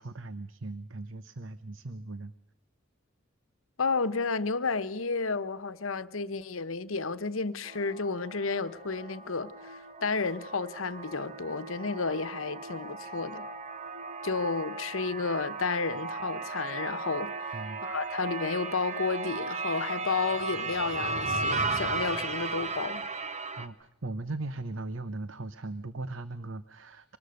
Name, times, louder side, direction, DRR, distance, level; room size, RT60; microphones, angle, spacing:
voice 1, 0.0-2.3 13.0-13.2 17.5-17.8 23.6-27.2, right 2 dB, 65° right, 0.9 m, -38 dB
voice 2, 3.8-13.5 14.2-23.1, left 4 dB, 85° left, 1.1 m, -32 dB
sound 1, 7.6-23.7, right 3 dB, 35° right, 1.3 m, -36 dB
24.5 x 20.0 x 6.5 m
head